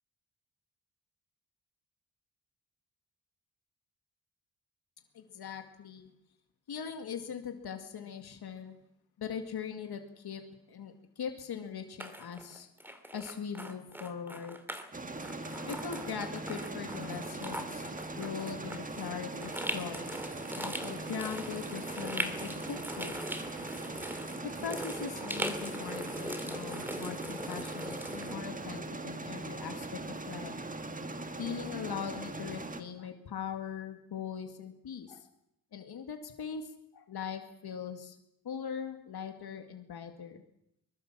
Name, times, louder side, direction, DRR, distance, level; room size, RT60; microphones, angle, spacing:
voice 1, 5.1-6.1 6.7-8.8 9.2-10.4 10.7-12.7 13.1-14.6 15.7-17.8 18.2-20.0 20.5-23.2 24.6-30.5 31.4-35.3 35.7-38.2 38.4-40.4, left 7 dB, 85° left, 6 dB, 2.3 m, -41 dB
sound 1, 12.0-14.9 15.2-28.4, equal, 5° right, 2.4 m, -41 dB
sound 2, 14.9-32.8, right 2 dB, 20° right, 1.7 m, -40 dB
24.0 x 21.0 x 7.5 m, 0.77 s
wide cardioid pair, 160°, 37 cm